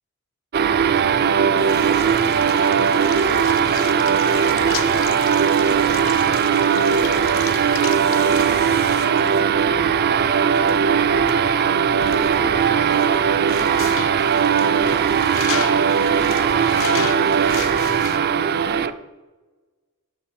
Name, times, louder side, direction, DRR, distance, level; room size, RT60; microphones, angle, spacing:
sound 1, 0.5-18.9, right 7 dB, 45° right, 0.4 m, -19 dB
sound 2, 0.9-18.2, left 8 dB, 65° left, 0.6 m, -35 dB
voice 1, 1.1-9.1 9.7-11.2 11.6-13.8 14.4-15.1 15.5-18.9, left 3 dB, 85° left, 2 dB, 1.0 m, -37 dB
sound 3, 3.1-6.7 7.3-10.5 10.8-16.9, right 3 dB, 85° right, 1.4 m, -40 dB
13.0 x 5.4 x 5.8 m, 1.3 s
head